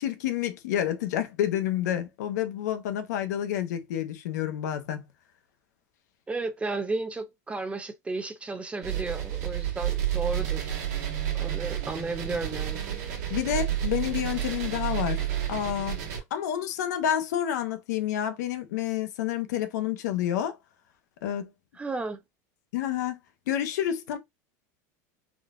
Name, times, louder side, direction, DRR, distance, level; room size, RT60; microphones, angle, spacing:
voice 1, 0.0-5.0 13.3-15.2 15.5-20.6 21.2-21.5 22.7-23.2 23.5-24.2, left 10 dB, 85° left, 0.7 m, -29 dB
voice 2, 6.3-10.7 11.3-12.9 21.8-22.2, right 3 dB, 15° right, 0.4 m, -33 dB
sound 1, 8.8-16.2, right 11 dB, 75° right, 1.2 m, -30 dB
3.7 x 2.3 x 2.3 m
supercardioid pair, 120°, 9 cm